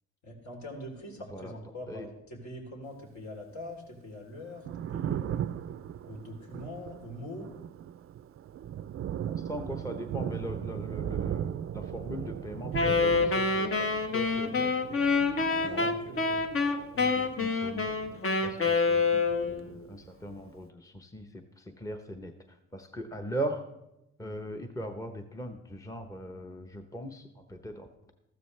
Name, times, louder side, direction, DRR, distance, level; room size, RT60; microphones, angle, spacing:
voice 1, 0.2-4.6 4.9-5.5 6.1-7.5 15.5-16.4 16.9-17.5, left 1 dB, 65° left, 1 dB, 3.5 m, -43 dB
Thunder, 4.4-18.9 19.1-20.4, right 10 dB, 45° right, 0.5 m, -38 dB
voice 2, 9.3-14.7 15.6-15.9 17.1-18.0 18.4-22.3 22.7-23.6 24.2-28.1, right 1 dB, 10° left, 5 dB, 0.9 m, -40 dB
Wind instrument woodwind instrument, 12.7-19.7, left 4 dB, 45° left, 1.2 m, -27 dB
14.0 x 13.0 x 3.3 m, 0.89 s
cardioid pair, 90°, 30 cm